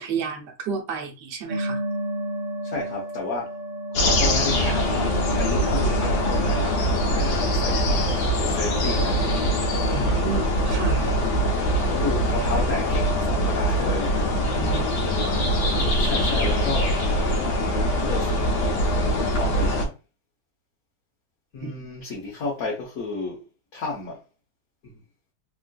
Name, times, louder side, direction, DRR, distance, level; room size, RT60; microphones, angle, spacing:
voice 1, 0.0-1.8 9.9-11.1 14.5-15.2 21.6-21.9, right 5 dB, 90° right, 1.4 m, -32 dB
sound 1, 1.5-18.7, right 1 dB, 55° right, 0.5 m, -36 dB
voice 2, 2.6-3.6 3.9-9.6 11.9-14.6 16.0-17.1 18.0-18.9 19.3-19.9 21.5-23.4 23.7-24.2 24.8-25.0, left 3 dB, 60° left, 1.3 m, -32 dB
sound 2, 3.9-19.9, equal, 85° left, 1.4 m, -23 dB
3.6 x 2.5 x 2.3 m
omnidirectional pair, 1.8 m